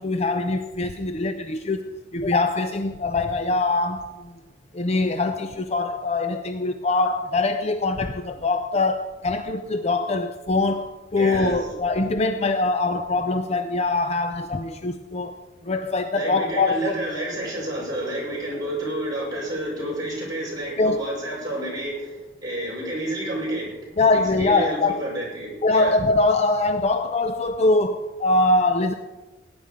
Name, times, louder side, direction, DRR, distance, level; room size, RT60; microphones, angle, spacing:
voice 1, 0.0-4.3 4.7-15.4 15.6-16.9 20.8-21.0 24.0-25.0 25.6-28.9, left 2 dB, 35° left, 0.5 m, -23 dB
voice 2, 11.2-11.6 16.1-23.7 24.3-26.0, right 1 dB, 20° right, 5.9 m, -30 dB
17.5 x 9.7 x 5.1 m
head